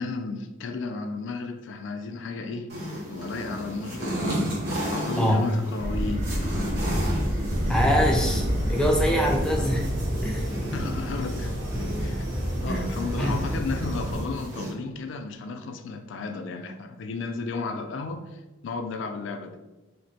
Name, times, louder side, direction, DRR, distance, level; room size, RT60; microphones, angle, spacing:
voice 1, 0.0-2.7 3.1-4.2 4.9-6.3 10.7-12.3 12.6-19.6, left 3 dB, 75° left, 7 dB, 0.3 m, -33 dB
sound 1, 2.7-14.7, equal, 55° right, 1.3 m, -34 dB
sound 2, 5.8-10.6, equal, 40° right, 0.9 m, -28 dB
sound 3, 7.5-14.2, equal, 70° right, 0.9 m, -31 dB
voice 2, 7.7-9.9 10.2-10.5 12.6-13.4, equal, 5° left, 0 dB, 0.4 m, -25 dB
5.0 x 2.2 x 2.8 m, 1.1 s
head